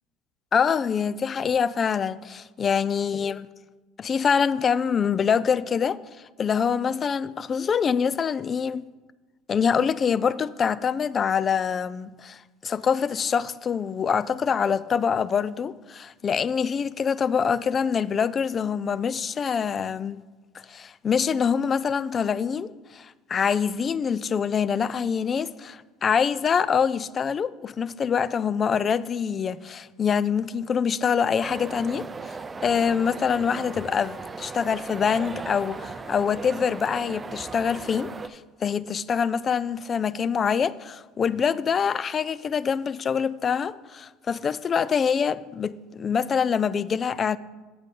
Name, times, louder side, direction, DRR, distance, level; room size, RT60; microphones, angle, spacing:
voice 1, 0.5-3.5 4.0-6.0 6.4-8.9 9.5-20.2 20.7-32.4 32.6-47.4, left 6 dB, 35° left, 0.3 m, -25 dB
sound 1, 31.4-38.3, right 4 dB, 25° right, 0.5 m, -37 dB
7.9 x 7.7 x 3.8 m
hypercardioid pair, 80°, 0 cm